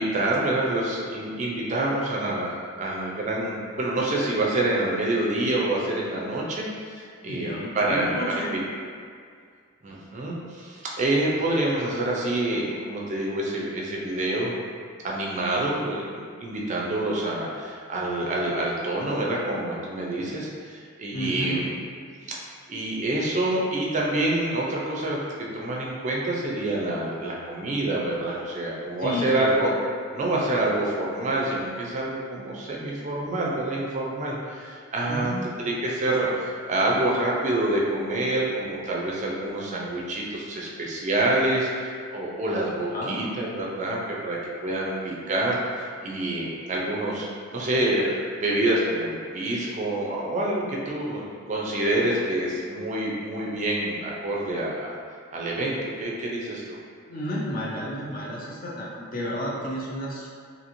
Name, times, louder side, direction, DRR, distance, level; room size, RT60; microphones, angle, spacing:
voice 1, 0.0-8.1 8.5-8.6 9.8-14.6 15.0-21.6 22.2-22.4 22.7-29.7 30.1-35.3 35.6-55.0 55.3-56.8, right 1 dB, 35° right, -3 dB, 0.4 m, -27 dB
voice 2, 7.3-8.6 21.1-21.7 29.0-29.7 35.1-35.5 42.9-43.2 57.0-60.3, equal, 40° left, -4 dB, 0.4 m, -31 dB
2.9 x 2.6 x 2.6 m, 2.1 s
head